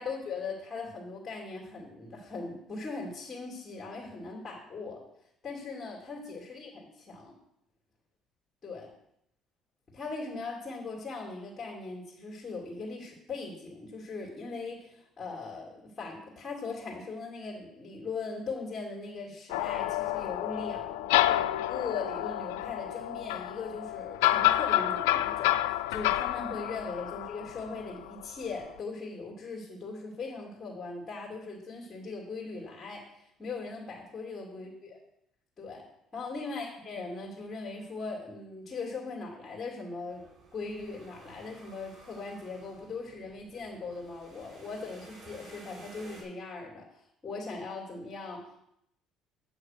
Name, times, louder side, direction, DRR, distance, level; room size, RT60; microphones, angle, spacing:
voice 1, 0.0-5.0 5.4-7.3 8.6-8.9 9.9-33.0 33.4-35.0 35.6-35.8 36.1-40.2 40.5-48.6, left 4 dB, 35° left, -2 dB, 2.8 m, -39 dB
sound 1, 19.5-28.3, left 14 dB, 90° left, 0.3 m, -29 dB
sound 2, 40.1-46.2, right 2 dB, 50° right, 4.4 m, -54 dB
8.7 x 6.4 x 5.9 m, 0.77 s
supercardioid pair, 80°, 0 cm